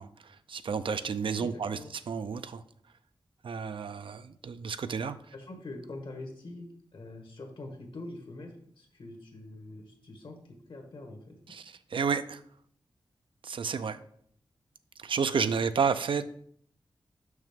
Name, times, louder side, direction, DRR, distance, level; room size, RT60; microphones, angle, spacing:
voice 1, 0.0-1.8 2.1-2.6 3.4-5.2 11.5-12.4 13.4-14.0 15.0-16.2, right 6 dB, 70° right, 12 dB, 0.4 m, -31 dB
voice 2, 1.4-1.9 5.3-6.7 6.9-11.3, left 2 dB, 70° left, 3 dB, 1.5 m, -44 dB
6.3 x 5.6 x 3.6 m, 0.65 s
wide cardioid pair, 65°, 9 cm